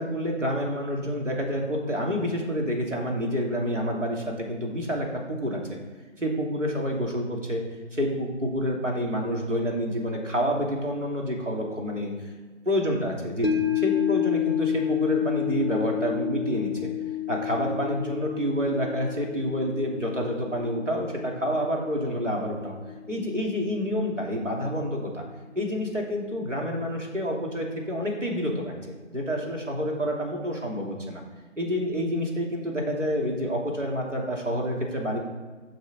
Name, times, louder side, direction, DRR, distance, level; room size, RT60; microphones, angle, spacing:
voice 1, 0.0-5.6 6.2-7.6 7.9-12.1 12.7-16.9 17.3-22.7 23.1-25.2 25.5-28.7 29.1-31.2 31.6-35.2, equal, 80° right, -1 dB, 3.0 m, -28 dB
sound 1, 13.4-23.8 24.2-24.3, left 12 dB, 55° left, 0.6 m, -31 dB
8.9 x 6.4 x 4.4 m, 1.4 s
figure-of-eight pair, 180°, 37 cm